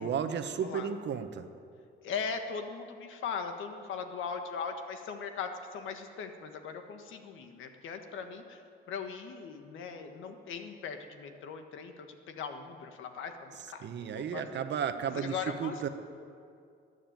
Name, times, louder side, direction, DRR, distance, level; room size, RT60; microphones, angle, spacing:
voice 1, 0.0-1.5 13.8-15.3 15.6-15.9, right 7 dB, 60° right, 9 dB, 1.1 m, -33 dB
voice 2, 0.6-0.9 2.0-8.6 8.9-14.6 15.1-15.9, left 6 dB, 80° left, 6 dB, 1.5 m, -39 dB
14.0 x 10.0 x 9.2 m, 2.4 s
cardioid pair, 90°, 20 cm